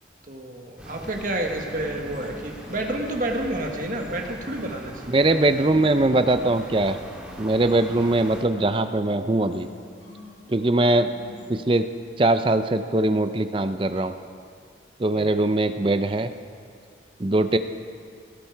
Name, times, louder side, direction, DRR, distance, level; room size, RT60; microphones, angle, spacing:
voice 1, 0.3-5.1 15.1-15.4, right 1 dB, 45° right, 2 dB, 1.5 m, -29 dB
sound 1, 0.8-8.4, equal, 5° right, 1.9 m, -42 dB
sound 2, 1.5-11.7, left 2 dB, 75° left, 1.5 m, -46 dB
voice 2, 5.1-7.0 7.4-9.7 10.5-11.1 11.5-11.9 12.2-14.1 15.0-16.3 17.2-17.6, right 2 dB, 25° right, 10 dB, 0.5 m, -21 dB
18.0 x 16.5 x 4.6 m, 2.2 s
head